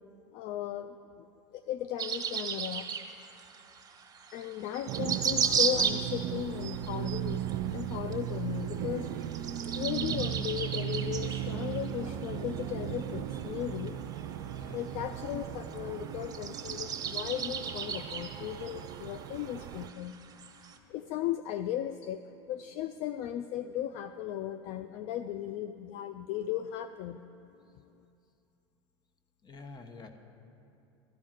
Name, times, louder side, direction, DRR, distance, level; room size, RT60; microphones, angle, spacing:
voice 1, 0.3-1.3 1.5-2.9 4.3-7.4 7.7-9.1 9.7-14.1 14.7-20.2 20.9-22.2 22.5-27.2, left 11 dB, 50° left, 10 dB, 0.4 m, -36 dB
sound 1, 2.0-20.8, right 6 dB, 25° right, 1.2 m, -36 dB
sound 2, 4.9-19.9, right 11 dB, 60° right, 0.4 m, -37 dB
voice 2, 14.6-15.0 29.4-30.1, left 3 dB, 30° left, 6 dB, 1.2 m, -48 dB
13.5 x 4.8 x 8.9 m, 2.7 s
hypercardioid pair, 80°, 14 cm